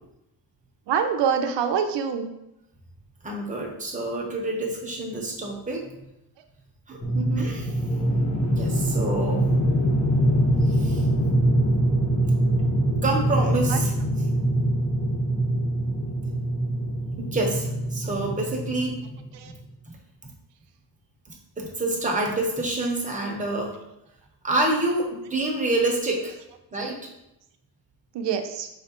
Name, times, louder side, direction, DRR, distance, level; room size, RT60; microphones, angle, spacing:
voice 1, 0.9-2.3 7.1-7.5 13.7-13.8 19.3-19.5 28.1-28.7, right 7 dB, 90° right, 6 dB, 0.6 m, -25 dB
voice 2, 3.2-5.8 6.9-7.0 7.4-7.7 8.5-9.4 10.7-11.0 13.0-13.9 17.2-19.0 21.3-23.7 24.4-26.3 26.7-27.0, right 2 dB, 20° right, -1 dB, 1.0 m, -27 dB
sound 1, 7.0-19.2, right 1 dB, 15° left, 1.0 m, -24 dB
5.0 x 3.1 x 3.0 m, 0.87 s
wide cardioid pair, 125°, 42 cm